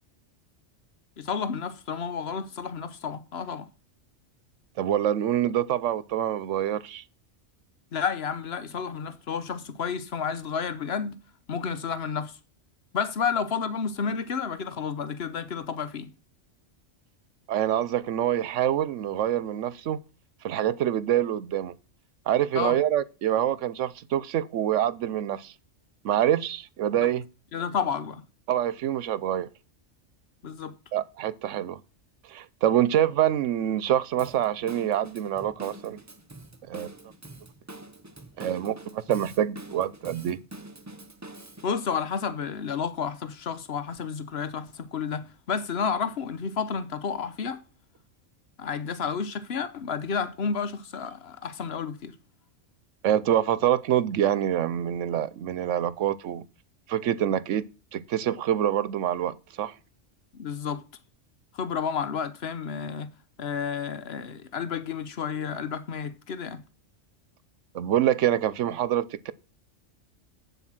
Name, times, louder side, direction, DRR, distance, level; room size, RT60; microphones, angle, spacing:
voice 1, 1.2-3.7 7.9-11.2 11.5-12.4 12.9-16.1 22.5-22.8 27.5-28.2 30.4-30.8 41.6-47.6 48.6-52.1 60.3-60.8 61.5-63.1 63.4-66.6, left 6 dB, 60° left, 1.0 m, -31 dB
voice 2, 4.8-7.0 17.5-20.0 20.4-21.7 22.3-25.5 26.0-27.3 28.5-29.5 30.9-31.8 32.3-36.0 36.7-36.9 38.4-40.4 53.0-56.5 56.9-57.6 57.9-59.7 67.7-69.3, right 11 dB, 75° right, 1.0 m, -26 dB
Drum kit / Drum, 34.2-41.7, right 2 dB, 15° right, 0.6 m, -45 dB
8.2 x 7.4 x 6.1 m
omnidirectional pair, 1.3 m